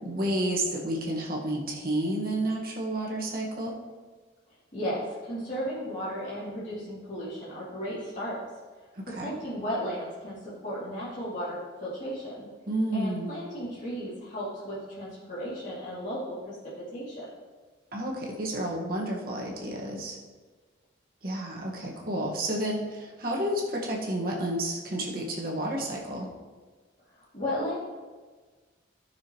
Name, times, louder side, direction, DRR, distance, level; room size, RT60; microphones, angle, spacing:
voice 1, 0.0-3.8 8.9-9.3 12.7-13.3 17.9-20.2 21.2-26.3, right 1 dB, 50° right, -2 dB, 1.6 m, -30 dB
voice 2, 4.7-8.4 9.2-10.4 10.6-12.5 12.9-16.5 16.9-17.3 27.3-27.8, equal, 40° left, -11 dB, 2.6 m, -34 dB
15.0 x 6.1 x 3.1 m, 1.4 s
head